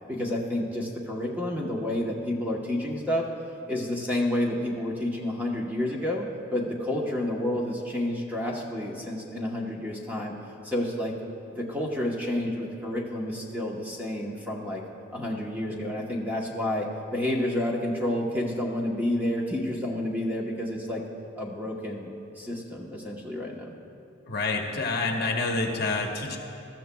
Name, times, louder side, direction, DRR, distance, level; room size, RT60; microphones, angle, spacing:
voice 1, 0.1-3.3 3.7-6.3 6.5-10.4 10.6-11.1 11.5-14.8 15.1-21.0 21.4-23.7, left 1 dB, 10° right, -2 dB, 1.0 m, -30 dB
voice 2, 24.3-26.4, left 3 dB, 50° left, 1 dB, 1.1 m, -28 dB
21.0 x 13.5 x 2.3 m, 2.7 s
head